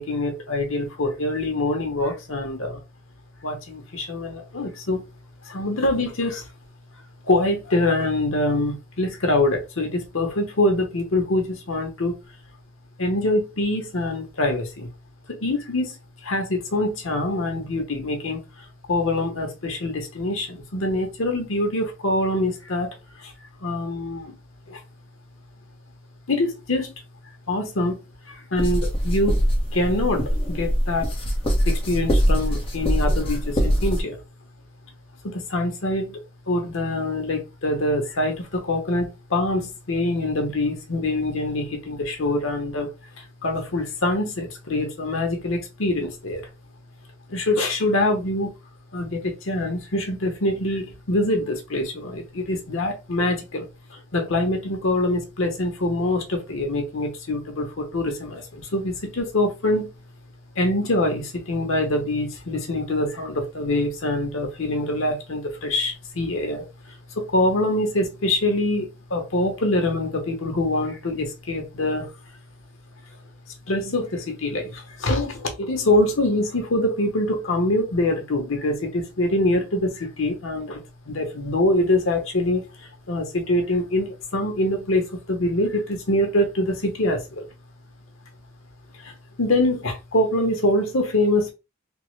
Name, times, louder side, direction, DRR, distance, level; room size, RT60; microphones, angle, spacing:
voice 1, 0.0-2.8 3.4-5.0 5.4-6.4 7.3-12.1 13.0-14.9 15.3-16.0 16.2-18.4 18.9-22.9 23.2-23.3 23.6-24.3 24.7-24.8 26.3-26.9 27.5-28.0 28.3-29.4 29.7-31.1 31.6-34.2 35.2-36.2 36.5-42.9 43.2-46.4 47.3-48.5 48.9-53.7 53.9-59.9 60.6-66.6 67.2-72.1 73.7-80.8 81.1-87.5 89.0-91.5, left 1 dB, 80° left, 1.0 m, -24 dB
sound 1, 28.6-34.0, equal, 30° left, 0.8 m, -23 dB
3.5 x 2.1 x 3.1 m
head